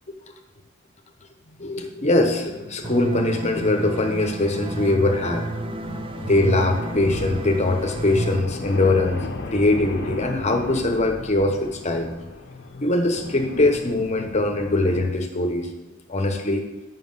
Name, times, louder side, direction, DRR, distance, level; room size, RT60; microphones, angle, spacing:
sound 1, 1.5-15.1, left 2 dB, 60° left, 0.8 m, -36 dB
voice 1, 1.6-5.5 6.2-9.2 9.5-12.1 12.8-15.7 16.1-16.6, left 2 dB, 35° left, 4 dB, 1.0 m, -22 dB
sound 2, 2.8-8.4, right 2 dB, 25° right, 0.4 m, -30 dB
7.7 x 5.7 x 5.6 m, 1.0 s
head